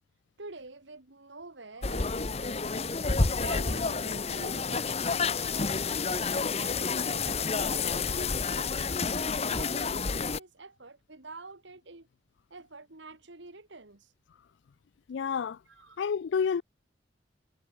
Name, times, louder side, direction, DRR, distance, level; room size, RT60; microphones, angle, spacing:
voice 1, 0.4-3.0 3.4-5.0 5.4-12.1 12.5-14.1 15.7-16.0, right 3 dB, 70° right, 2.1 m, -48 dB
sound 1, 1.8-10.4, left 4 dB, 35° left, 0.9 m, -29 dB
voice 2, 15.1-15.6 16.0-16.6, left 6 dB, 70° left, 0.4 m, -29 dB
head